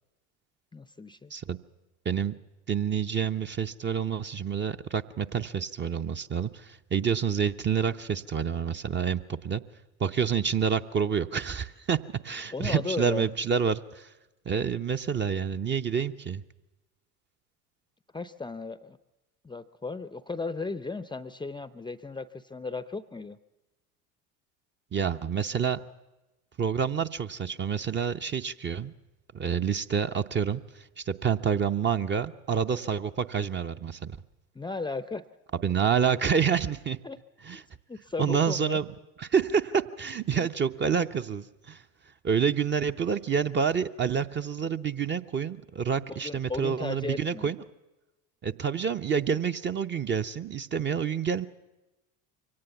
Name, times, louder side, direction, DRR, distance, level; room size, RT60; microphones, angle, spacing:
voice 1, 0.7-1.3 12.5-13.3 18.1-19.0 19.4-23.4 34.5-35.2 37.0-37.2 37.5-37.6 37.9-38.8 40.4-40.5 46.1-47.5, left 3 dB, 10° left, 15 dB, 0.6 m, -35 dB
voice 2, 2.7-9.6 10.0-12.0 12.2-14.1 14.5-16.4 24.9-25.8 26.6-28.9 29.3-34.2 35.6-37.0 37.4-37.6 38.2-38.8 39.2-41.8 42.2-47.6 48.4-51.5, right 7 dB, 25° right, 8 dB, 0.7 m, -28 dB
23.5 x 17.5 x 7.1 m, 1.1 s
hypercardioid pair, 70°, 45 cm